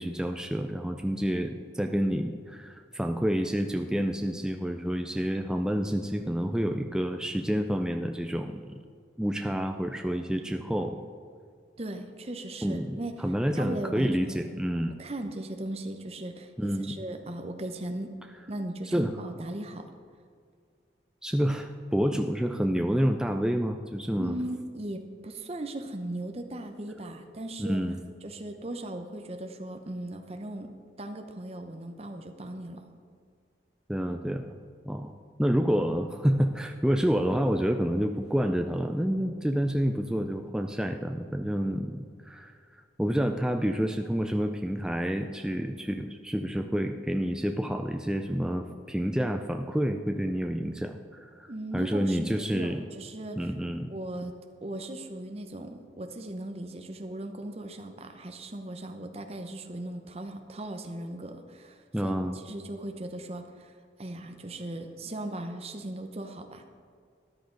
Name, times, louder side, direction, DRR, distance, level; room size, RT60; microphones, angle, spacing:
voice 1, 0.0-8.8 9.2-11.0 12.6-15.0 16.6-16.9 18.9-19.1 21.2-24.3 27.6-28.0 33.9-34.5 34.9-35.1 35.4-42.5 43.0-51.5 51.7-52.8 53.4-53.9 61.9-62.4, equal, 5° right, 5 dB, 0.3 m, -28 dB
voice 2, 11.8-13.1 13.6-14.7 15.0-18.1 18.5-19.8 24.2-27.8 28.2-30.7 31.0-32.8 51.5-53.5 53.9-54.3 54.6-62.2 62.4-63.7 64.0-66.6, right 1 dB, 35° right, 5 dB, 0.8 m, -38 dB
13.5 x 10.5 x 3.9 m, 2.1 s
head